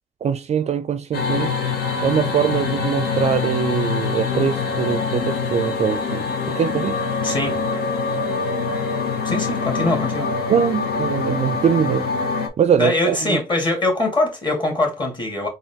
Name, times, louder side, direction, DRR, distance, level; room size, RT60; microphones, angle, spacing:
voice 1, 0.2-1.6 2.0-7.0 10.5-12.1 12.6-13.4, right 8 dB, 45° right, 0.4 m, -22 dB
sound 1, 1.1-12.5, left 5 dB, 80° left, 0.8 m, -24 dB
voice 2, 7.2-7.6 9.2-10.3 12.8-15.5, left 2 dB, 30° left, 1.9 m, -22 dB
3.9 x 2.6 x 3.4 m
cardioid pair, 95°, 16 cm